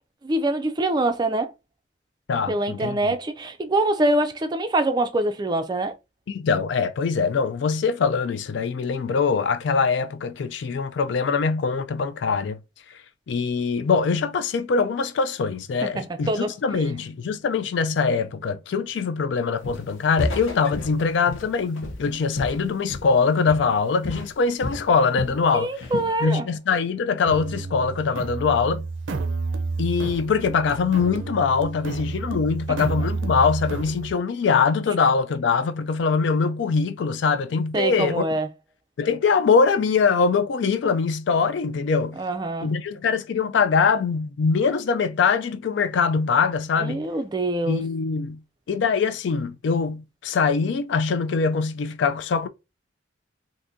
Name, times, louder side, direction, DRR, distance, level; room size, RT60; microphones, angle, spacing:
voice 1, 0.2-1.5 2.5-5.9 16.0-16.5 25.5-26.5 37.7-38.5 42.2-42.7 46.8-47.8, right 1 dB, 20° right, 0.4 m, -24 dB
voice 2, 2.3-3.0 6.3-12.6 13.3-25.7 26.2-28.9 29.8-38.2 39.0-42.2 42.6-47.1 47.7-48.4 48.7-52.5, left 5 dB, 70° left, 0.4 m, -23 dB
Walk footsteps, 19.6-19.9 20.2-23.2 23.5-23.8 24.0-25.4 25.8-26.2, left 2 dB, 90° left, 0.7 m, -32 dB
sound 1, 27.3-34.1, right 3 dB, 75° right, 0.5 m, -30 dB
3.6 x 2.6 x 2.6 m
head